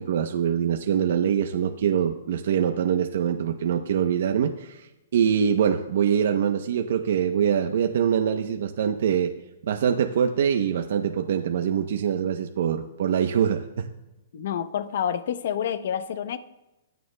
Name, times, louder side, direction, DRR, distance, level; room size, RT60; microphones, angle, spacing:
voice 1, 0.0-9.3 9.6-13.9, right 8 dB, 65° right, 0.7 m, -24 dB
voice 2, 14.3-16.4, left 9 dB, 60° left, 0.7 m, -28 dB
24.5 x 9.2 x 2.2 m
hypercardioid pair, 155°, 0 cm